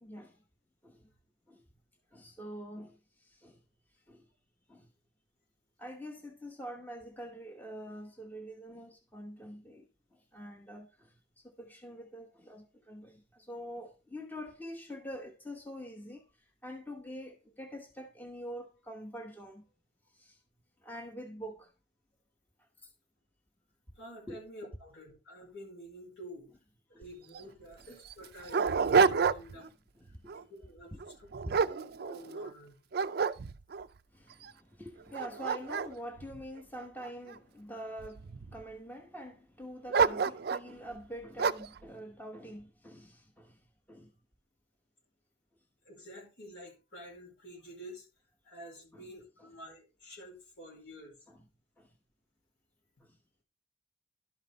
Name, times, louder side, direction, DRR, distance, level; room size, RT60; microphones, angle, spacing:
voice 1, 0.0-0.3 0.8-1.0 1.5-1.6 2.1-2.9 3.4-3.6 4.1-4.2 4.7-4.8 5.8-9.8 10.3-10.9 11.4-16.2 16.6-19.6 20.2-20.3 20.8-21.7 24.3-24.5 26.9-27.0 30.2-30.3 30.9-31.0 34.1-34.4 34.8-38.2 38.5-43.5 43.9-44.1 48.9-49.1 49.4-49.5 51.3-51.4 51.8-51.9, equal, 10° left, 1.0 m, -45 dB
voice 2, 24.0-26.5 27.0-29.7 30.3-30.9 31.2-31.7 32.0-32.8 45.8-48.1 48.4-51.1, equal, 70° left, 4.6 m, -49 dB
Dog, 27.0-27.1 27.4-27.5 28.1-29.7 30.1-30.4 31.0-32.5 32.9-33.9 34.4-34.5 35.0-37.3 38.0-38.6 39.9-40.7 41.4-41.8, right 5 dB, 55° right, 0.4 m, -29 dB
12.0 x 5.6 x 3.9 m
head